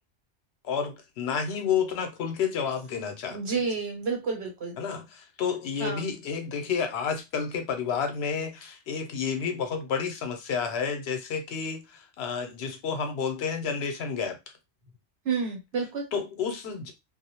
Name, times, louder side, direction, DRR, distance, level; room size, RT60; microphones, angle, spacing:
voice 1, 0.6-3.6 4.8-14.4 16.1-16.9, left 6 dB, 75° left, 0.8 m, -30 dB
voice 2, 3.3-4.8 5.8-6.1 15.2-16.1, right 5 dB, 70° right, 1.1 m, -30 dB
2.3 x 2.0 x 2.8 m
omnidirectional pair, 1.1 m